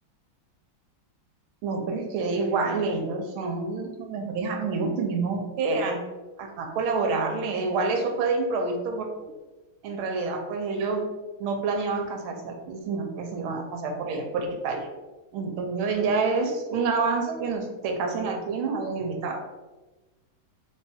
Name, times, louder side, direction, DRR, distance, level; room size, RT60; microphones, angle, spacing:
voice 1, 1.6-6.0 6.4-9.3 9.8-11.1 11.4-14.9 15.3-19.4, right 4 dB, 85° right, 3 dB, 1.5 m, -28 dB
3.2 x 2.7 x 3.4 m, 1.1 s
omnidirectional pair, 2.2 m